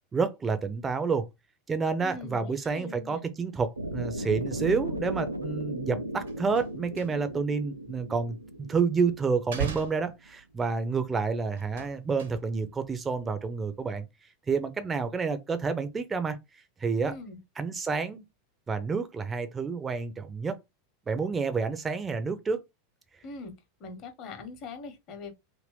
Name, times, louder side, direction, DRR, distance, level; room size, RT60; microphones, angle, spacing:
voice 1, 0.1-1.3 1.7-8.4 8.7-14.1 14.5-16.4 16.8-17.1 17.6-18.2 18.7-20.6 21.1-22.6, right 5 dB, 20° right, 0.6 m, -29 dB
voice 2, 2.0-3.2 17.0-17.4 23.2-23.5 23.8-25.3, left 3 dB, 40° left, 1.0 m, -42 dB
sound 1, 3.8-9.9, right 1 dB, 90° right, 0.4 m, -36 dB
sound 2, 5.7-5.9 6.1-7.5 7.8-8.9 9.4-10.8 11.5-12.8 13.0-13.5 13.8-14.0, right 7 dB, 70° right, 1.1 m, -38 dB
2.8 x 2.6 x 3.2 m
figure-of-eight pair, 85°, 0 cm